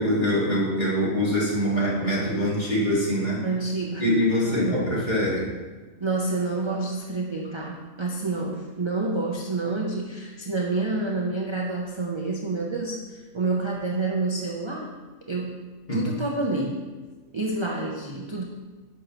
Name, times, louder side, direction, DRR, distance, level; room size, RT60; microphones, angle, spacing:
voice 1, 0.0-3.4 4.0-5.5 15.9-16.0, equal, 35° left, -6 dB, 2.0 m, -24 dB
voice 2, 3.4-4.9 6.0-14.9 15.3-15.6 15.9-16.9 17.3-18.4, right 3 dB, 35° right, -1 dB, 0.5 m, -28 dB
9.9 x 6.1 x 3.0 m, 1.3 s
omnidirectional pair, 1.4 m